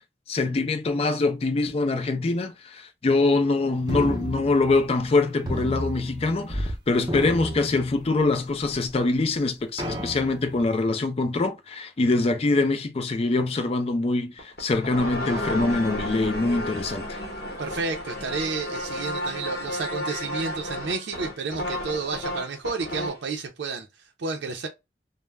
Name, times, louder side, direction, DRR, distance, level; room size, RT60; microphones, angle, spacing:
voice 1, 0.3-17.2, left 3 dB, 35° left, 0.4 m, -24 dB
sound 1, 3.9-5.1 5.5-6.8 7.0-8.3 8.9-9.0 9.8-10.6, equal, 25° right, 0.5 m, -32 dB
sound 2, 14.4-23.3, left 1 dB, 60° left, 0.8 m, -32 dB
voice 2, 17.6-23.9 24.2-24.7, right 4 dB, 80° right, 0.5 m, -31 dB
2.2 x 2.0 x 3.1 m
head